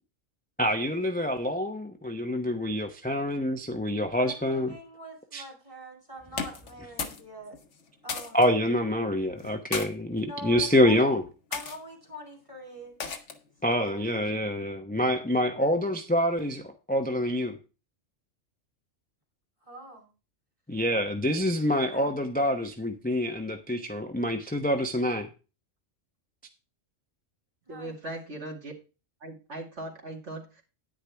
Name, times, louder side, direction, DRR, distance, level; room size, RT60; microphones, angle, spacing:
voice 1, 0.6-4.8 5.3-5.4 8.3-11.2 13.6-17.6 20.7-25.3, left 1 dB, 10° left, 4 dB, 0.7 m, -26 dB
voice 2, 4.2-7.6 8.0-8.4 10.2-11.1 11.5-12.9 13.6-14.0 19.6-20.1 21.9-22.2 27.7-28.0, equal, 25° right, 1 dB, 2.5 m, -44 dB
sound 1, 6.3-7.3 7.5-8.5 9.4-9.9 10.6-10.9 11.5-11.8 13.0-13.5, left 5 dB, 70° left, 1.4 m, -35 dB
voice 3, 27.7-28.7 29.2-30.6, right 1 dB, 65° right, 0 dB, 2.6 m, -39 dB
10.0 x 9.9 x 3.4 m, 0.32 s
omnidirectional pair, 1.3 m